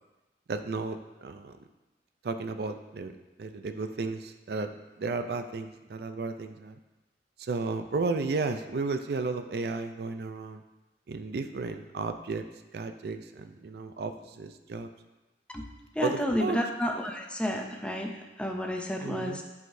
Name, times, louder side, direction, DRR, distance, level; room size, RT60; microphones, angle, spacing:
voice 1, 0.5-1.5 2.2-4.7 5.0-6.8 7.4-10.6 11.1-12.5 12.7-14.9 16.0-16.6 19.0-19.4, right 3 dB, 60° right, 8 dB, 0.4 m, -33 dB
voice 2, 16.0-19.4, left 1 dB, 5° left, 2 dB, 0.5 m, -31 dB
11.0 x 4.8 x 2.6 m, 1.1 s
head